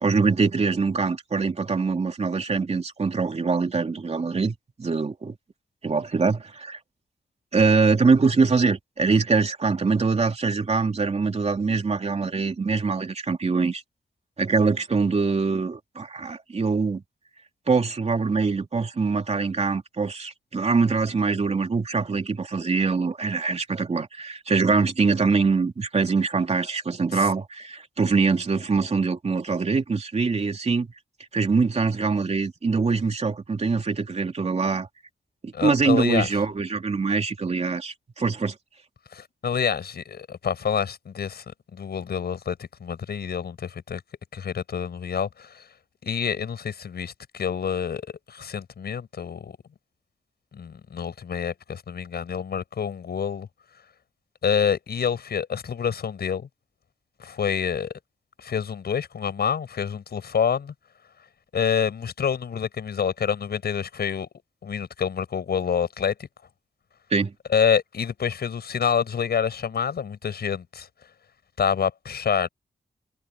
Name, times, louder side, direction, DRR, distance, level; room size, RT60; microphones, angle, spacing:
voice 1, 0.0-5.3 5.8-6.8 7.5-13.8 14.4-17.0 17.7-30.9 31.3-34.9 35.4-38.5 67.1-67.3, right 4 dB, 40° right, 3.0 m, -23 dB
voice 2, 35.5-36.3 39.1-41.4 41.7-44.0 44.3-45.6 46.0-48.0 48.3-49.6 50.5-53.5 54.4-56.5 57.2-57.9 58.4-60.7 61.5-64.3 64.6-66.1 67.5-70.9 71.6-72.5, left 7 dB, 80° left, 6.8 m, -27 dB
wide cardioid pair, 120°, 16 cm